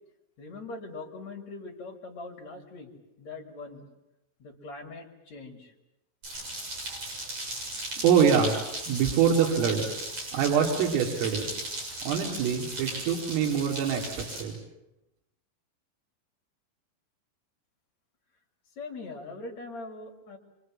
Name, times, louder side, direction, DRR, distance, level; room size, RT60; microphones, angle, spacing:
voice 1, 0.4-3.9 4.4-5.7 18.8-20.4, left 3 dB, 40° left, 1 dB, 3.2 m, -42 dB
sound 1, 6.2-14.4, right 1 dB, 35° right, 8.4 m, -37 dB
voice 2, 8.0-8.6 8.9-9.9 10.3-11.5 12.0-14.6, right 7 dB, 75° right, 0 dB, 5.0 m, -24 dB
26.0 x 26.0 x 7.6 m, 0.91 s
omnidirectional pair, 5.9 m